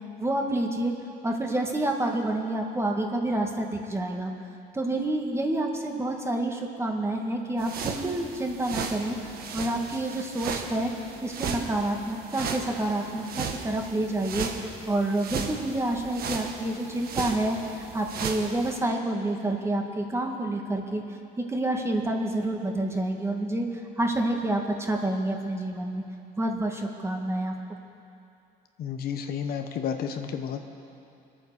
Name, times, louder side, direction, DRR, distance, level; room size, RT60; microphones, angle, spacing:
voice 1, 0.2-0.9 1.2-4.3 4.7-21.0 21.5-23.7 24.0-26.0 26.4-27.6, right 1 dB, 15° right, 2 dB, 1.8 m, -28 dB
sound 1, 7.6-18.8, right 6 dB, 60° right, 1.5 m, -36 dB
voice 2, 28.8-30.6, left 7 dB, 65° left, 6 dB, 1.2 m, -31 dB
23.5 x 8.8 x 6.9 m, 2.6 s
cardioid pair, 110°, 17 cm